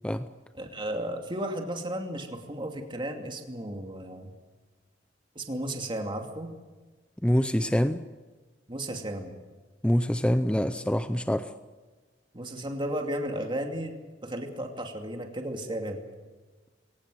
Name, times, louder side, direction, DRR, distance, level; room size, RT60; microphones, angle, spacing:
voice 1, 0.5-4.3 5.3-6.5 8.7-9.3 12.3-14.0 14.2-16.0, right 1 dB, 25° right, 3 dB, 2.5 m, -34 dB
voice 2, 7.2-8.0 9.8-11.5, equal, 5° left, 11 dB, 0.6 m, -25 dB
22.0 x 18.5 x 7.8 m, 1.3 s
head